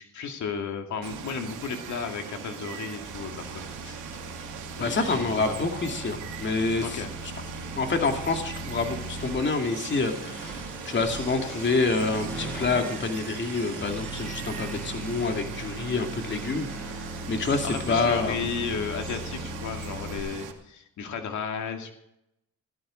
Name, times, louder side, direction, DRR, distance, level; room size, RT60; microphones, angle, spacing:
voice 1, 0.0-4.2 4.8-5.5 6.8-7.1 11.4-11.7 17.4-21.9, left 6 dB, 70° left, 4 dB, 2.4 m, -34 dB
Water, 1.0-20.5, right 8 dB, 85° right, 2.2 m, -40 dB
sound 1, 3.0-20.2, right 1 dB, 5° left, 7.4 m, -39 dB
voice 2, 4.8-7.0 7.8-16.7 17.3-18.4, left 3 dB, 40° left, 4 dB, 2.3 m, -27 dB
17.0 x 12.0 x 5.1 m, 0.82 s
cardioid pair, 90°, 30 cm